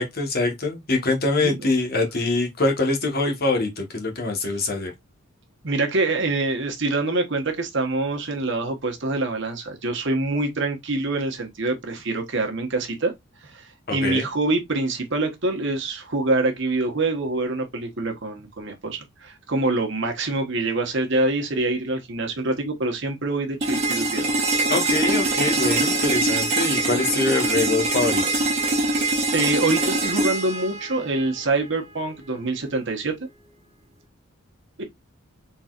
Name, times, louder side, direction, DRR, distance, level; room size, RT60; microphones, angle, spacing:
voice 1, 0.0-4.9 13.9-14.3 24.7-28.2, left 2 dB, 45° left, 1.2 m, -24 dB
voice 2, 5.6-13.1 13.4-24.3 29.3-33.2 34.8-34.9, right 2 dB, 55° right, 1.2 m, -25 dB
sound 1, 23.6-31.6, right 2 dB, 30° right, 1.2 m, -23 dB
4.2 x 3.9 x 2.4 m
head